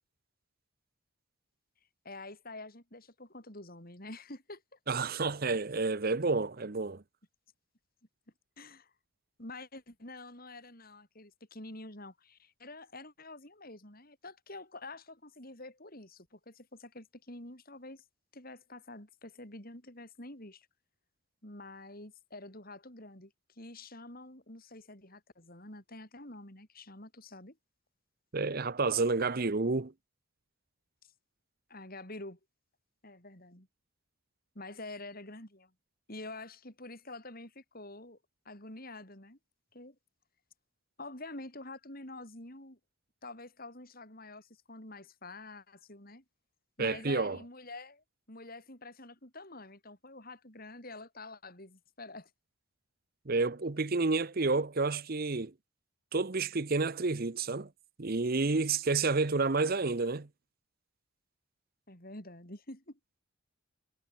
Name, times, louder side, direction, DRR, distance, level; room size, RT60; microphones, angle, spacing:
voice 1, 2.0-4.6 8.6-8.9 9.4-18.0 18.3-20.7 21.4-27.6 31.7-32.4 33.0-33.7 34.5-35.7 36.1-38.2 38.4-39.4 39.7-40.0 41.0-42.8 43.2-46.2 46.8-52.3 61.9-63.0, left 2 dB, 40° left, 6.1 m, -47 dB
voice 2, 4.9-7.0 28.3-29.9 46.8-47.4 53.3-55.5 56.1-57.7 58.0-60.3, right 3 dB, 45° right, 0.8 m, -30 dB
head